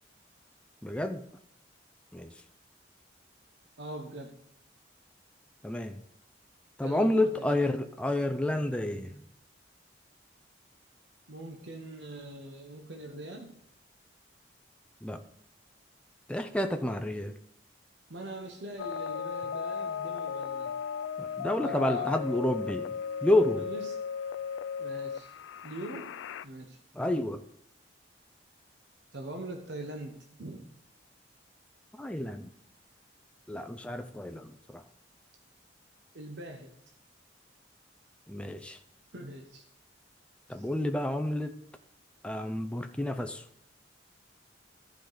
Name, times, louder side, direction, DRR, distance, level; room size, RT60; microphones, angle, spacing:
voice 1, 0.8-1.2 2.1-2.3 5.6-6.0 6.8-9.2 15.0-15.2 16.3-17.3 21.2-23.6 26.9-27.4 31.9-32.5 33.5-34.8 38.3-38.8 40.5-41.6 42.2-43.4, left 1 dB, 5° left, 0.4 m, -30 dB
voice 2, 3.8-4.3 6.8-7.6 11.3-13.6 18.1-20.7 21.6-22.1 23.6-24.0 24.8-25.3 25.6-26.1 26.4-26.8 29.1-30.7 36.1-36.7 39.1-39.6 40.5-40.7, right 1 dB, 70° right, 1.0 m, -42 dB
sound 1, 18.8-26.5, left 7 dB, 85° left, 0.3 m, -36 dB
14.0 x 5.0 x 3.9 m
head